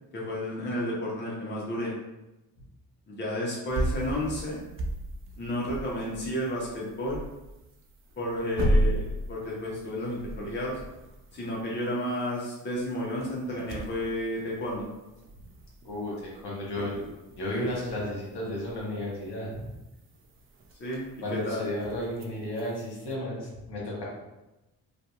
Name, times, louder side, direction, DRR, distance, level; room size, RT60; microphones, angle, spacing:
voice 1, 0.1-1.9 3.1-4.6 5.4-7.2 8.2-10.8 11.3-14.9 16.8-16.9 20.8-21.0 21.3-21.7, equal, 20° left, -4 dB, 0.7 m, -32 dB
sound 1, 3.7-23.1, right 1 dB, 30° right, 0.4 m, -36 dB
voice 2, 15.8-17.0 17.4-19.7 21.2-24.0, left 1 dB, 50° left, -4 dB, 1.1 m, -33 dB
2.6 x 2.4 x 2.3 m, 0.98 s
hypercardioid pair, 40°, 50 cm